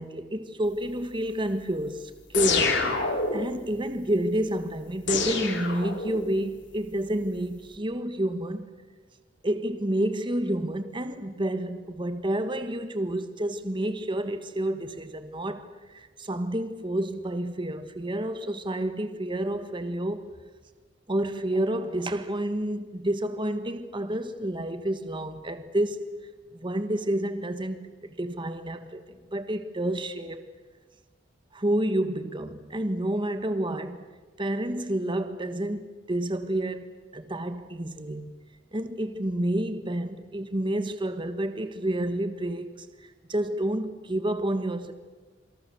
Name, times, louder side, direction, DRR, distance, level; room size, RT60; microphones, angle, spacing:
voice 1, 0.0-8.6 9.4-20.3 21.1-26.1 26.5-30.5 31.5-34.0 34.4-38.3 38.7-42.9 43.3-44.9, right 1 dB, 25° right, 1.4 m, -29 dB
sound 1, 2.3-3.6 5.1-6.4, left 4 dB, 65° left, 3.4 m, -26 dB
27.5 x 25.0 x 6.9 m
head